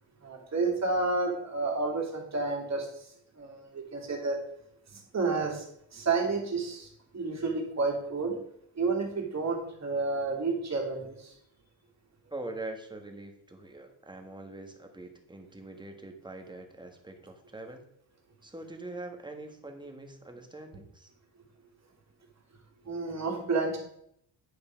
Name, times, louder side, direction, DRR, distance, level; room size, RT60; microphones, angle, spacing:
voice 1, 0.2-2.9 3.4-4.4 4.9-5.6 5.9-6.9 7.1-8.3 8.8-11.3 22.8-23.8, right 3 dB, 35° right, 1 dB, 2.5 m, -30 dB
voice 2, 12.3-17.8 18.4-21.1, right 2 dB, 10° right, 4 dB, 1.4 m, -43 dB
9.6 x 5.4 x 5.1 m, 0.71 s
cardioid pair, 115°, 44 cm